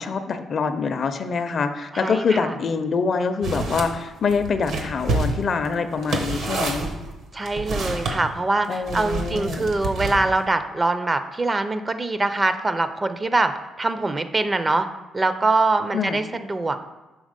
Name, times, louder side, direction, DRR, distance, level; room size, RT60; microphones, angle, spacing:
voice 1, 0.0-6.9 8.7-9.7 15.9-16.2, left 5 dB, 50° left, 9 dB, 0.5 m, -25 dB
voice 2, 1.9-2.5 7.3-13.5 13.8-14.9 15.1-16.8, right 2 dB, 25° right, 10 dB, 0.4 m, -23 dB
sound 1, 3.4-3.9 4.3-8.2 8.9-10.4, right 3 dB, 70° right, 1.0 m, -28 dB
6.2 x 3.6 x 5.1 m, 1.1 s
cardioid pair, 90°, 0 cm